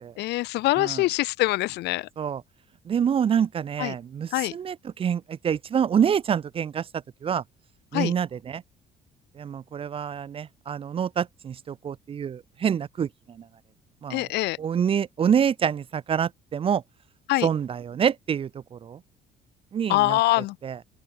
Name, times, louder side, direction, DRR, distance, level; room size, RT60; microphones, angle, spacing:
voice 1, 0.2-2.1 3.8-3.9 4.3-4.5 7.9-8.1 14.1-14.6 17.3-17.5 19.9-20.5, left 19 dB, 80° left, 0.9 m, -24 dB
voice 2, 2.9-6.9 7.2-7.4 7.9-8.6 9.4-13.5 14.0-14.3 14.6-16.8 17.4-19.0 19.7-20.8, right 8 dB, 35° right, 0.4 m, -27 dB
open air
cardioid pair, 110°, 17 cm